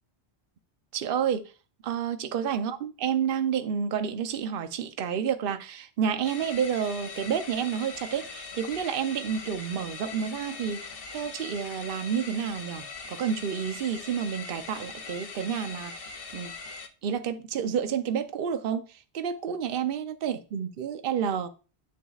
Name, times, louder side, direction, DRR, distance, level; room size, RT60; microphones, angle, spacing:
voice 1, 0.9-1.4 1.8-16.5 17.0-21.5, right 8 dB, 60° right, 0.9 m, -30 dB
sound 1, 6.2-16.9, left 4 dB, 60° left, 1.1 m, -41 dB
10.5 x 7.0 x 2.4 m
omnidirectional pair, 1.1 m